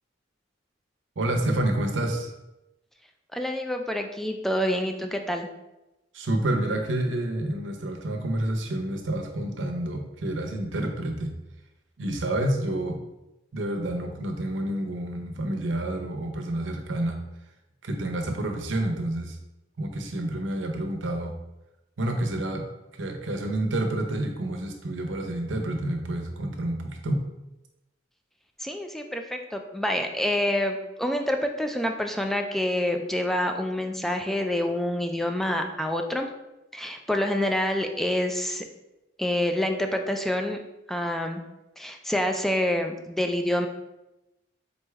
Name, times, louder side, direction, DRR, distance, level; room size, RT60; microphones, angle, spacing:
voice 1, 1.2-2.3 6.1-11.3 12.0-13.0 13.5-17.2 17.8-19.4 19.8-21.3 22.0-22.6 23.0-27.2, right 1 dB, 80° right, 3 dB, 0.7 m, -28 dB
voice 2, 3.3-5.5 28.6-36.3 36.7-38.6 39.2-40.6 40.9-41.4 41.8-43.7, left 1 dB, ahead, 4 dB, 0.3 m, -27 dB
4.0 x 3.3 x 3.4 m, 0.96 s
head